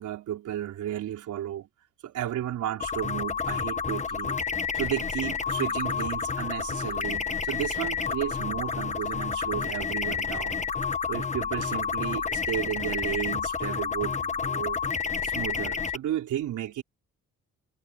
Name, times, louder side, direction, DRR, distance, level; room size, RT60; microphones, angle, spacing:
voice 1, 0.0-1.7 2.0-4.4 4.8-10.7 11.1-16.8, right 11 dB, 75° right, 4.0 m, -33 dB
sound 1, 2.8-16.0, left 6 dB, 25° left, 1.4 m, -30 dB
cardioid pair, 90°, 30 cm